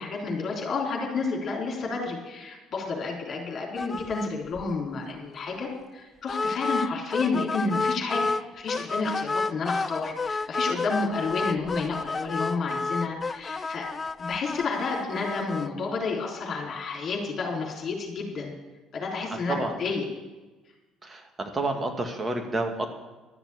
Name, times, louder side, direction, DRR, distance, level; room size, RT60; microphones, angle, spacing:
voice 1, 0.0-13.9 14.2-18.5 18.9-20.0, left 4 dB, 45° left, -1 dB, 3.7 m, -30 dB
sound 1, 3.8-4.3 4.6-4.7 5.0-5.1 6.3-8.4 8.7-15.7, left 3 dB, 30° left, 0.3 m, -30 dB
voice 2, 21.0-22.9, right 2 dB, 25° right, 4 dB, 2.1 m, -29 dB
12.5 x 7.1 x 8.3 m, 1.2 s
hypercardioid pair, 55°, 0 cm